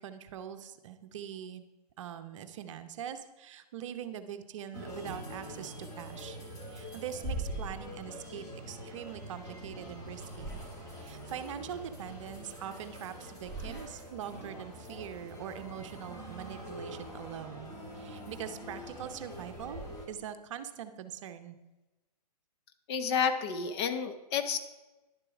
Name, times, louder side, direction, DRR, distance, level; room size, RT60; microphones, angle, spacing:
voice 1, 0.0-1.6 2.0-6.4 6.7-10.6 11.0-19.8 20.1-21.6, right 9 dB, 50° right, 9 dB, 0.8 m, -43 dB
sound 1, 4.7-20.1, right 1 dB, 15° left, 1.9 m, -43 dB
voice 2, 22.9-24.6, left 6 dB, 40° left, 8 dB, 0.8 m, -30 dB
10.5 x 6.8 x 4.8 m, 1.1 s
hypercardioid pair, 130°, 21 cm